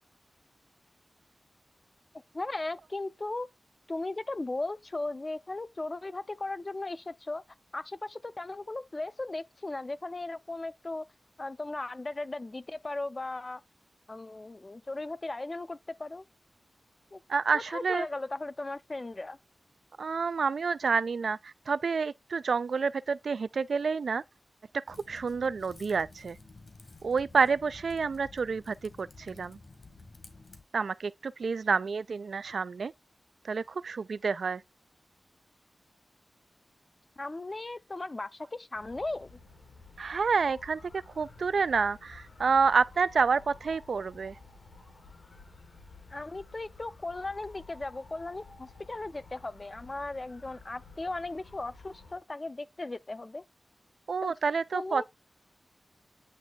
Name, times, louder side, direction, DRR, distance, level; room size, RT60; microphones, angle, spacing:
voice 1, 2.3-3.5 3.9-7.4 7.7-11.1 11.4-13.6 14.1-16.2 17.1-17.2 17.5-19.4 37.2-39.4 46.1-53.4 54.2-54.4 54.7-55.0, left 2 dB, 30° left, 0.5 m, -37 dB
voice 2, 17.3-18.1 20.0-24.2 24.7-26.4 27.0-29.6 30.7-32.9 33.4-34.6 40.0-44.3 54.1-55.0, right 5 dB, 80° right, 0.3 m, -29 dB
Typing, 24.9-30.6, left 3 dB, 60° left, 1.5 m, -52 dB
sound 1, 38.7-52.2, left 3 dB, 85° left, 2.7 m, -53 dB
8.9 x 3.1 x 3.9 m
wide cardioid pair, 105°, 0 cm